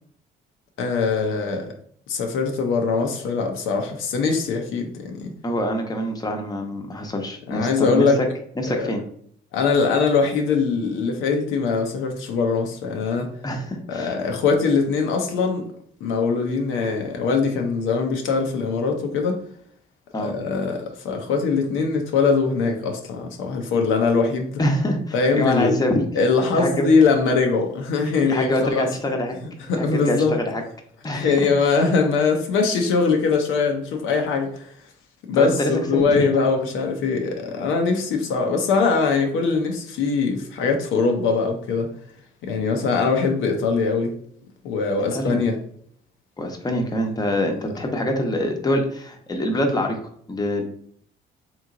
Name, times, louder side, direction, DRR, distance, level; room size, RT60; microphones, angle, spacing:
voice 1, 0.8-1.7 2.1-5.3 7.5-8.2 8.7-8.9 9.5-13.3 13.9-15.7 16.0-19.4 20.2-24.6 25.1-25.7 26.1-28.9 29.7-30.4 31.1-34.7 35.3-41.9 42.4-44.2 44.6-45.6, left 4 dB, 90° left, 0.7 m, -22 dB
voice 2, 5.4-8.1 8.6-9.0 13.4-14.1 20.1-20.3 24.6-26.0 26.5-26.8 28.2-29.4 29.7-30.6 31.0-31.8 35.3-36.5 45.1-45.4 46.4-50.0 50.3-50.6, left 1 dB, 20° left, 0.8 m, -25 dB
3.5 x 3.1 x 3.7 m
cardioid pair, 90°, 20 cm